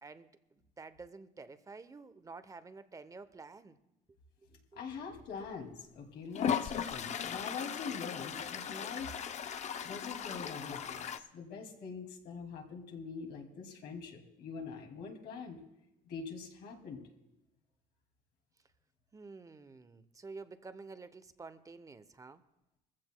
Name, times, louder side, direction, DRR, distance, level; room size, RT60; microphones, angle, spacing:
voice 1, 0.0-3.8 4.7-4.8 19.1-22.4, right 4 dB, 20° right, 0.7 m, -50 dB
voice 2, 4.8-9.2 9.8-15.6 16.0-17.0, left 5 dB, 75° left, 2.5 m, -44 dB
Toilet flush, 5.4-5.5 6.3-11.2, left 8 dB, 45° left, 0.6 m, -37 dB
21.5 x 15.0 x 2.2 m
cardioid pair, 110°, 17 cm